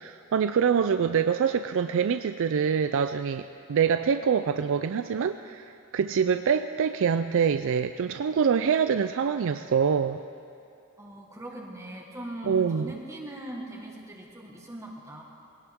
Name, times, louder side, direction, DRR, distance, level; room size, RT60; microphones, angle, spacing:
voice 1, 0.0-10.2 12.4-12.9, right 7 dB, 60° right, 9 dB, 0.4 m, -25 dB
voice 2, 11.0-15.2, right 1 dB, 15° right, -2 dB, 1.5 m, -40 dB
22.0 x 17.5 x 3.6 m, 2.6 s
head